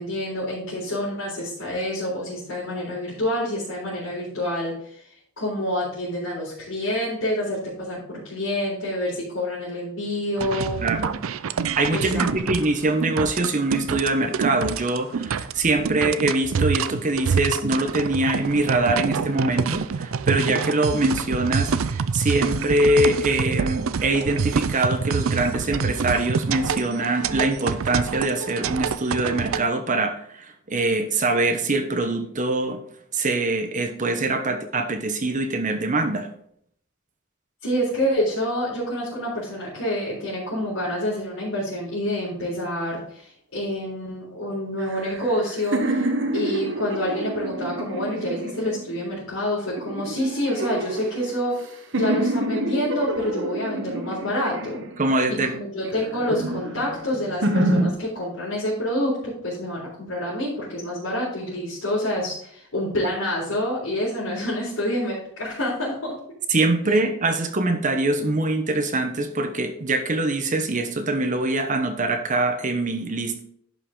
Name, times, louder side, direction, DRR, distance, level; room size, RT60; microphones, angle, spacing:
voice 1, 0.0-5.1 5.4-10.8 11.9-12.3 37.6-46.1 46.3-51.5 51.9-54.8 55.5-66.2, left 1 dB, 75° left, -9 dB, 3.9 m, -27 dB
sound 1, 10.4-29.6, right 6 dB, 80° right, 0.5 m, -27 dB
voice 2, 10.8-11.2 11.8-32.8 33.1-36.3 55.0-55.5 66.5-73.4, right 2 dB, 40° right, 6 dB, 0.9 m, -23 dB
sound 2, 44.8-49.1 49.7-51.6 51.9-55.3 55.8-57.9, right 1 dB, 60° right, 1.0 m, -28 dB
11.0 x 5.6 x 3.8 m, 0.66 s
head